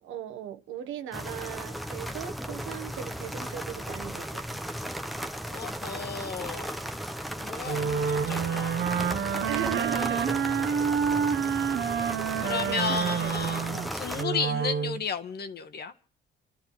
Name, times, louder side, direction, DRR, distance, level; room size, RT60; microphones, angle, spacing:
voice 1, 0.0-4.4 9.5-10.9 12.4-14.0, right 9 dB, 90° right, 1.2 m, -38 dB
sound 1, 1.1-14.2, equal, ahead, 0.8 m, -36 dB
voice 2, 5.5-6.9 7.3-8.8 9.1-9.6 12.4-15.9, left 6 dB, 55° left, 1.4 m, -34 dB
Wind instrument woodwind instrument, 7.6-15.0, right 7 dB, 65° right, 0.9 m, -28 dB
28.0 x 13.0 x 3.2 m
cardioid pair, 90°, 20 cm